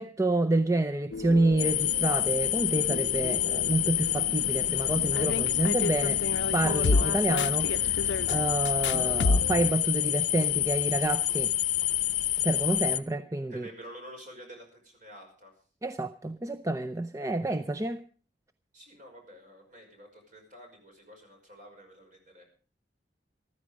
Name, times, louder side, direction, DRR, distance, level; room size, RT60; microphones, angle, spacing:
voice 1, 0.0-6.2 6.5-11.5 12.4-13.7 15.8-18.0, right 2 dB, 20° right, 0.6 m, -28 dB
sound 1, 1.1-9.7, left 3 dB, 80° left, 0.6 m, -32 dB
sound 2, 1.6-13.0, left 13 dB, 45° left, 0.8 m, -28 dB
voice 2, 13.5-15.5 18.7-22.4, equal, 45° right, 5.6 m, -49 dB
14.5 x 13.5 x 5.2 m
head